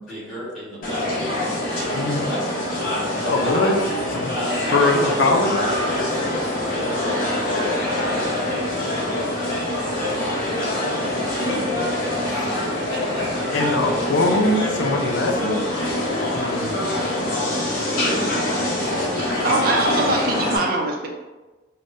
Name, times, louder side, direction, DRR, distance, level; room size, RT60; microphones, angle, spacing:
voice 1, 0.1-8.9 10.6-14.4 17.1-17.4, left 1 dB, ahead, -10 dB, 1.4 m, -34 dB
sound 1, 0.8-20.6, left 1 dB, 45° left, 0.8 m, -24 dB
voice 2, 1.9-2.3 3.3-3.9 4.2-4.3 4.7-5.6 13.5-15.6 16.3-16.7, left 2 dB, 75° left, 1 dB, 0.5 m, -21 dB
voice 3, 19.1-21.1, right 2 dB, 50° right, 1 dB, 0.6 m, -23 dB
5.0 x 2.2 x 2.6 m, 1.2 s
head